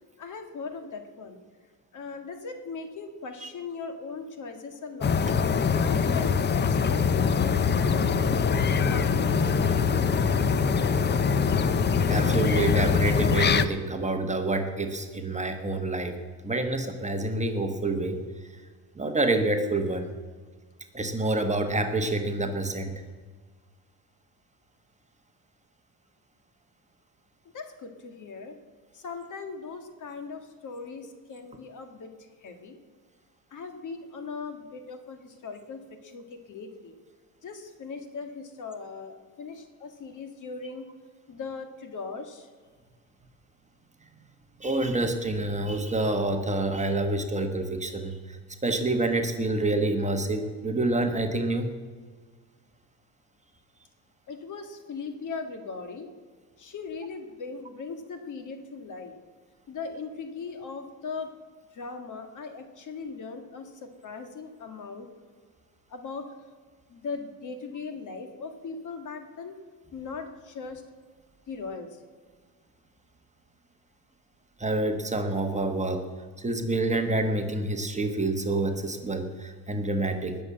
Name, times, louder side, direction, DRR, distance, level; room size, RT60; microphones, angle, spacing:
voice 1, 0.2-1.4 1.9-5.2 5.8-8.3 8.9-9.5 27.5-28.6 28.9-32.1 32.4-32.8 33.5-37.0 37.4-40.9 41.3-42.5 54.3-56.1 56.6-59.1 59.7-61.3 61.7-65.1 65.9-66.3 66.9-69.5 69.9-70.8 71.5-71.9, left 4 dB, 50° left, 7 dB, 1.8 m, -39 dB
sound 1, 5.0-13.7, left 6 dB, 25° left, 0.6 m, -23 dB
voice 2, 12.1-16.2 16.4-18.2 19.0-20.1 20.9-22.9 44.6-48.1 48.6-51.7 74.6-76.0 76.4-80.4, right 2 dB, 15° right, 5 dB, 1.3 m, -27 dB
19.5 x 7.0 x 7.5 m, 1.5 s
cardioid pair, 120°, 40 cm